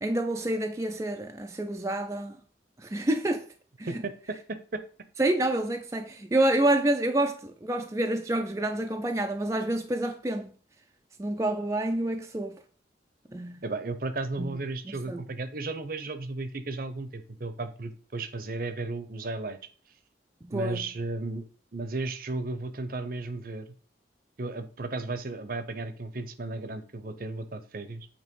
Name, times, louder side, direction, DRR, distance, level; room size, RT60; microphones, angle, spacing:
voice 1, 0.0-2.4 2.8-3.4 3.8-3.9 5.2-10.5 11.2-12.6 13.3-13.6 14.4-14.6 15.1-15.2 20.4-20.9, right 1 dB, 15° right, 0.4 m, -28 dB
voice 2, 3.9-4.8 13.6-19.6 20.5-21.4 21.7-23.7 24.4-28.1, right 3 dB, 50° right, 0.7 m, -34 dB
8.3 x 2.9 x 5.3 m
head